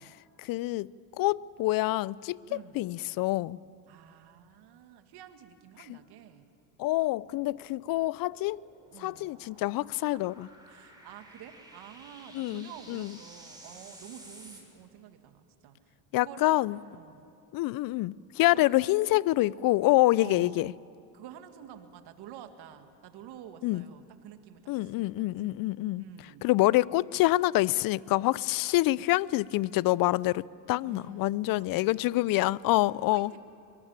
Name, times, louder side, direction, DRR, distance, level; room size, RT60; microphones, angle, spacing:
voice 1, 0.0-3.6 5.9-6.0 6.8-8.6 9.0-10.5 12.3-13.2 16.1-16.8 17.5-20.7 23.6-23.8 24.7-26.1 26.4-33.3, left 18 dB, 50° left, 0.5 m, -27 dB
voice 2, 2.5-2.9 3.9-6.5 8.9-9.3 10.1-10.2 10.7-17.3 18.5-19.0 20.2-20.8 21.1-25.1 25.4-25.5 26.0-26.5 30.8-32.4 33.1-33.4, right 10 dB, 60° right, 2.0 m, -49 dB
sound 1, 7.1-14.6, right 1 dB, 10° right, 7.1 m, -53 dB
23.5 x 19.5 x 8.8 m
supercardioid pair, 85°, 45 cm